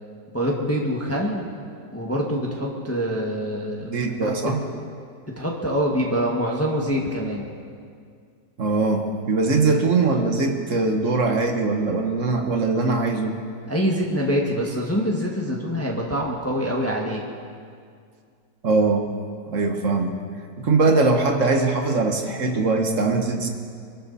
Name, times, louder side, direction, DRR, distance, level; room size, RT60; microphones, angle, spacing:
voice 1, 0.3-1.5 1.9-3.9 4.2-4.5 5.3-7.4 13.7-17.2, equal, 10° left, -2 dB, 1.5 m, -25 dB
voice 2, 3.8-4.6 8.6-13.4 18.6-19.1 19.5-20.2 20.6-23.5, right 3 dB, 50° right, 4 dB, 1.5 m, -21 dB
24.5 x 13.0 x 4.1 m, 2.2 s
omnidirectional pair, 1.8 m